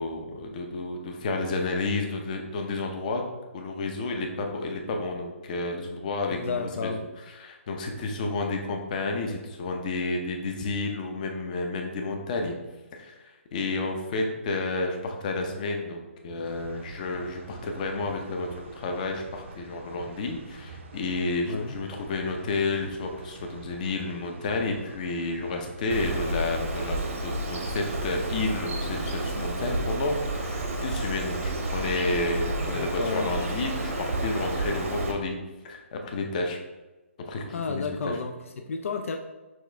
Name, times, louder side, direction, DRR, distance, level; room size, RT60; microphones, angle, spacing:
voice 1, 0.0-3.2 3.5-6.9 7.4-12.6 12.9-35.4 35.6-36.6 37.3-38.2, left 3 dB, 35° left, 3 dB, 0.6 m, -31 dB
voice 2, 6.3-7.1 21.5-21.8 32.6-33.3 37.5-39.2, left 4 dB, 70° left, 5 dB, 0.4 m, -32 dB
sound 1, 16.4-29.9, right 3 dB, 60° right, 0.6 m, -46 dB
Bird, 25.9-35.1, right 2 dB, 80° right, 1.0 m, -31 dB
6.1 x 2.4 x 3.4 m, 1.1 s
hypercardioid pair, 160°, 7 cm